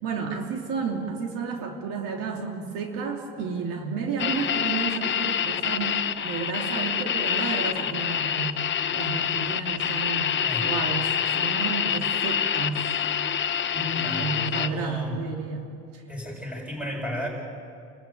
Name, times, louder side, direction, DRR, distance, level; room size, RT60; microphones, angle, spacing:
voice 1, 0.0-12.9 13.7-16.0, right 4 dB, 70° right, 1 dB, 3.0 m, -32 dB
sound 1, 4.2-14.7, left 9 dB, 35° left, 0.9 m, -26 dB
voice 2, 13.9-15.2 16.1-17.3, equal, 5° right, -1 dB, 7.5 m, -34 dB
29.5 x 14.0 x 9.2 m, 2.3 s
cardioid pair, 120°, 35 cm